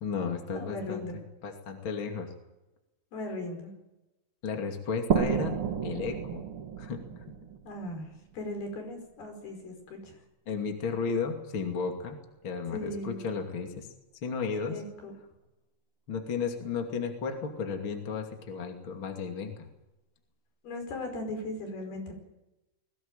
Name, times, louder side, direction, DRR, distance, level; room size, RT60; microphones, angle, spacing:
voice 1, 0.0-1.0 1.4-2.3 4.4-5.5 5.8-6.4 6.8-7.0 10.5-12.2 12.4-13.9 14.2-14.8 16.1-19.7, left 5 dB, 35° left, 4 dB, 2.6 m, -33 dB
voice 2, 0.5-1.2 3.1-3.7 7.7-8.1 8.3-10.2 12.7-13.2 14.7-15.1 20.6-22.1, left 1 dB, 60° left, 4 dB, 6.8 m, -38 dB
sound 1, 5.1-8.6, right 8 dB, 75° right, 1.2 m, -32 dB
21.5 x 17.5 x 9.0 m, 0.96 s
omnidirectional pair, 5.1 m